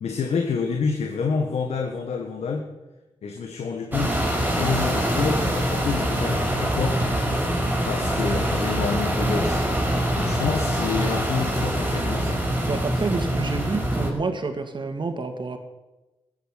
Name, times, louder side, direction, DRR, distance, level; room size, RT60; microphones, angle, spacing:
voice 1, 0.0-2.6 3.2-4.2 4.6-7.1 7.8-9.7 10.2-12.4, left 5 dB, 80° left, 3 dB, 1.6 m, -28 dB
sound 1, 3.9-14.1, right 1 dB, 15° right, 4.7 m, -24 dB
voice 2, 12.6-15.6, right 4 dB, 45° right, 8 dB, 2.3 m, -28 dB
14.0 x 8.2 x 9.2 m, 1.1 s
cardioid pair, 50°, 11 cm